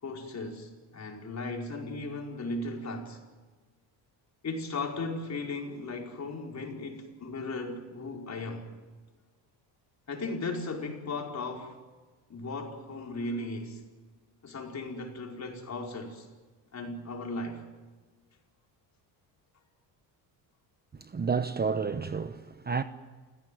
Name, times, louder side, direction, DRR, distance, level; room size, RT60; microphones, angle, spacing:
voice 1, 0.0-3.2 4.4-8.7 10.1-11.8 12.3-13.8 14.4-16.3 16.7-17.6, left 2 dB, 40° left, 5.0 m, -36 dB
voice 2, 21.1-22.8, right 5 dB, 20° right, 1.0 m, -30 dB
29.5 x 16.0 x 9.5 m
cardioid pair, 110°, 43 cm